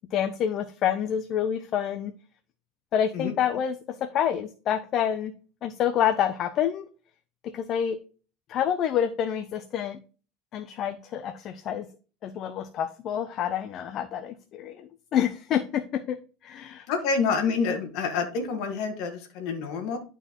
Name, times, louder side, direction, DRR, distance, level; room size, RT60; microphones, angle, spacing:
voice 1, 0.1-2.1 2.9-5.3 5.6-6.9 7.4-8.0 8.5-10.0 10.5-11.9 12.2-16.2 16.4-16.9, left 9 dB, 45° left, 10 dB, 0.6 m, -28 dB
voice 2, 16.9-20.0, left 5 dB, 65° left, 5 dB, 1.6 m, -27 dB
11.0 x 4.5 x 3.0 m, 0.37 s
supercardioid pair, 125°, 0 cm